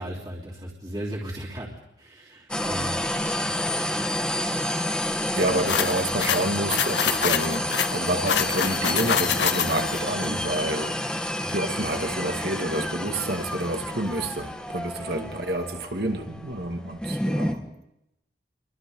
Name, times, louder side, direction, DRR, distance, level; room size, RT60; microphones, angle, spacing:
voice 1, 0.0-3.0 3.4-4.4 10.2-10.4 11.4-11.5 15.1-15.4, right 1 dB, 25° right, -5 dB, 3.2 m, -37 dB
sound 1, 2.5-17.5, left 1 dB, 5° left, 1.5 m, -29 dB
voice 2, 5.3-11.0 11.5-17.6, right 1 dB, 60° right, 4 dB, 2.3 m, -29 dB
sound 2, 5.7-10.0, left 8 dB, 75° left, 0.9 m, -26 dB
29.5 x 23.5 x 3.9 m, 0.85 s
head